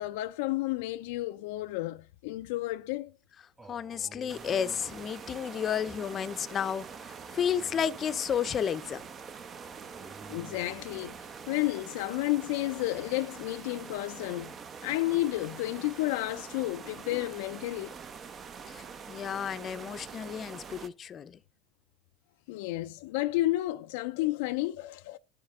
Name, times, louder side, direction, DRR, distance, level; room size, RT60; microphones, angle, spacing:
voice 1, 0.0-3.1 10.3-14.5 14.8-17.9 22.5-25.2, left 17 dB, 75° left, 0.4 m, -31 dB
Male speech man speaking, 3.6-5.8 6.8-8.6 9.6-11.6, right 2 dB, 20° right, 2.1 m, -53 dB
voice 2, 3.7-6.8 7.3-9.0 18.7-18.8 19.1-21.4, left 8 dB, 35° left, 0.6 m, -32 dB
sound 1, 4.3-20.9, right 6 dB, 35° right, 0.7 m, -45 dB
11.0 x 6.5 x 3.6 m
supercardioid pair, 105°, 0 cm